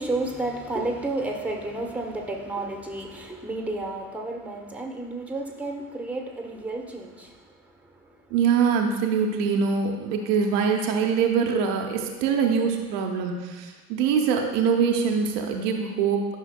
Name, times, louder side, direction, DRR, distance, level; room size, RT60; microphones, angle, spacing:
voice 1, 0.0-7.4, right 2 dB, 5° right, 2 dB, 1.0 m, -31 dB
voice 2, 8.3-16.2, right 6 dB, 65° right, 2 dB, 0.8 m, -23 dB
11.0 x 5.7 x 2.2 m, 1.3 s
figure-of-eight pair, 55°, 41 cm